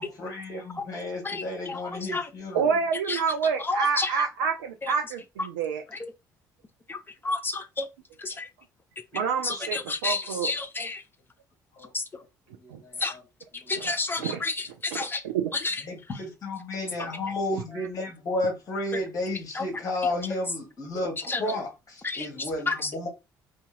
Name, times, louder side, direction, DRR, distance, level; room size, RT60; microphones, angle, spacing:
voice 1, 0.0-2.7 11.8-11.9 12.6-13.2 13.5-13.6 13.9-14.0 15.8-23.1, left 2 dB, 35° left, 2.0 m, -32 dB
voice 2, 1.2-1.8 2.1-2.2 3.1-3.2 3.7-4.1 6.9-7.0 7.2-7.9 8.2-8.5 9.4-11.0 11.9-12.0 13.0-13.1 13.7-15.2 15.5-15.8 21.3-21.4 22.0-22.3 22.7-22.8, left 3 dB, 20° left, 0.8 m, -30 dB
voice 3, 2.5-5.8 9.1-10.5 12.7-12.8 13.7-13.9 14.2-14.4 15.2-15.5 16.8-17.3, right 6 dB, 70° right, 0.4 m, -28 dB
4.2 x 2.7 x 3.6 m
figure-of-eight pair, 50°, 10 cm